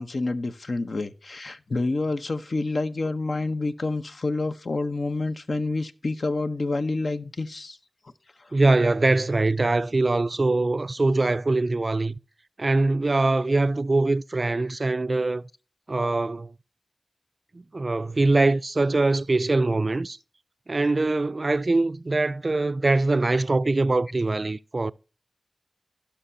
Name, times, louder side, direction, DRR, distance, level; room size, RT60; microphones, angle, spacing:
voice 1, 0.0-7.8, left 3 dB, 70° left, 0.7 m, -28 dB
voice 2, 8.5-12.2 12.6-15.4 15.9-16.5 17.5-20.2 20.7-24.9, right 2 dB, 55° right, 0.3 m, -23 dB
15.5 x 5.8 x 2.7 m
cardioid pair, 45°, 0 cm